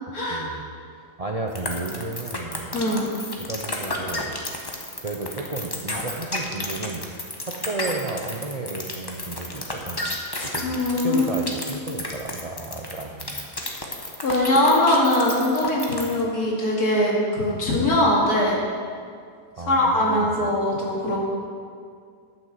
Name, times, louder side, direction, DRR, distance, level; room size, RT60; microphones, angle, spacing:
voice 1, 0.3-0.6 1.2-2.8 3.4-7.0 7.4-10.0 10.4-10.7 11.0-13.5 19.6-20.4, right 3 dB, 70° right, 1 dB, 0.3 m, -33 dB
sound 1, 1.5-16.2, left 2 dB, 15° left, 0.9 m, -31 dB
voice 2, 2.7-3.1 10.6-11.3 14.2-18.6 19.7-21.2, left 1 dB, 65° left, -5 dB, 2.7 m, -21 dB
11.0 x 6.1 x 7.4 m, 2.2 s
omnidirectional pair, 1.8 m